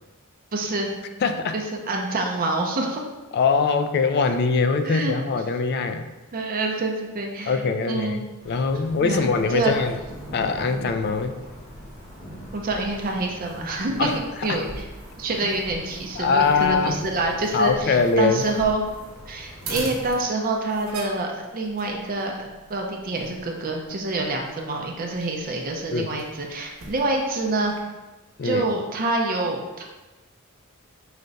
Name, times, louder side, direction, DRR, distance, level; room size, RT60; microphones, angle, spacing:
voice 1, 0.5-0.9 1.5-3.0 4.8-5.1 6.3-7.6 7.9-8.2 9.0-9.8 12.5-14.1 14.4-14.9 15.2-18.8 19.3-27.7 28.4-29.8, right 2 dB, 40° right, 1 dB, 0.5 m, -26 dB
voice 2, 1.2-1.6 3.3-6.1 7.5-10.0 10.3-11.4 14.0-14.2 14.5-14.6 16.2-17.0 17.5-18.4 25.9-26.1 28.4-28.7, left 4 dB, 50° left, 8 dB, 0.3 m, -22 dB
sound 1, 8.4-19.9, equal, 75° left, 1.5 m, -42 dB
sound 2, 9.3-27.8, right 2 dB, 85° right, 0.9 m, -44 dB
4.9 x 2.2 x 3.9 m, 1.1 s
head